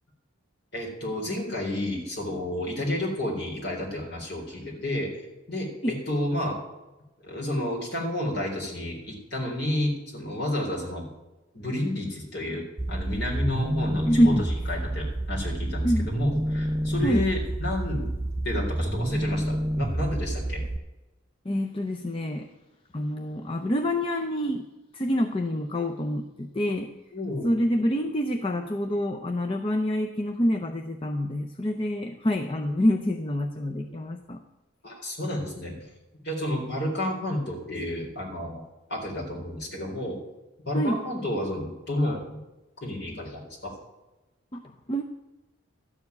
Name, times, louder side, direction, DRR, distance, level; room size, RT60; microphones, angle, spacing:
voice 1, 0.7-5.1 5.5-6.6 7.2-11.1 11.5-14.3 14.7-18.1 18.4-20.6 27.1-27.5 34.8-35.8 36.2-38.6 38.9-40.2 40.7-42.4 42.8-43.7, left 1 dB, 50° left, -2 dB, 4.0 m, -31 dB
sound 1, 12.8-20.8, right 1 dB, 10° right, 0.3 m, -28 dB
voice 2, 14.1-14.4 15.8-16.1 17.0-17.3 21.4-22.5 22.9-24.7 24.9-26.9 27.4-34.4 40.7-41.0 44.5-45.0, equal, 25° left, 3 dB, 0.6 m, -26 dB
12.5 x 7.1 x 9.7 m, 1.0 s
head